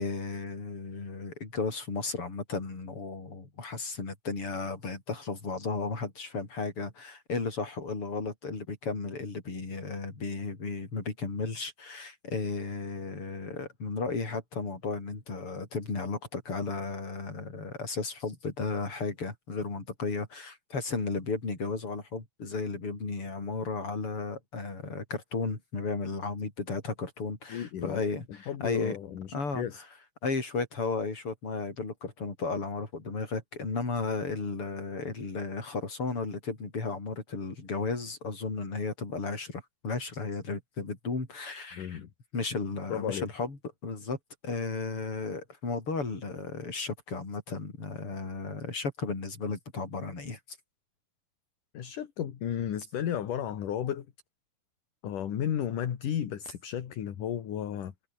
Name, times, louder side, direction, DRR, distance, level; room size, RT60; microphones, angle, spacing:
voice 1, 0.0-29.0 29.3-29.9 30.2-42.0 42.3-44.2 44.4-50.4, left 3 dB, 30° left, 6.4 m, -34 dB
voice 2, 27.5-28.0 28.5-29.8 41.7-42.1 42.9-43.3 51.7-54.1 55.0-57.9, left 9 dB, 55° left, 3.3 m, -33 dB
omnidirectional pair, 4.8 m